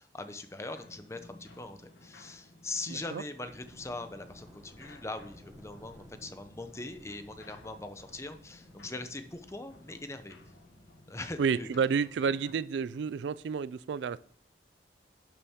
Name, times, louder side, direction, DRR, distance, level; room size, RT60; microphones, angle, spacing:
voice 1, 0.0-10.4 11.1-11.7, left 2 dB, 15° left, 9 dB, 0.7 m, -41 dB
sound 1, 0.7-12.7, left 2 dB, 75° left, 1.4 m, -56 dB
voice 2, 2.9-3.2 11.4-14.2, right 6 dB, 70° right, 18 dB, 0.3 m, -30 dB
sound 2, 3.4-11.6, equal, 10° right, 1.5 m, -57 dB
11.0 x 7.0 x 3.6 m, 0.64 s
head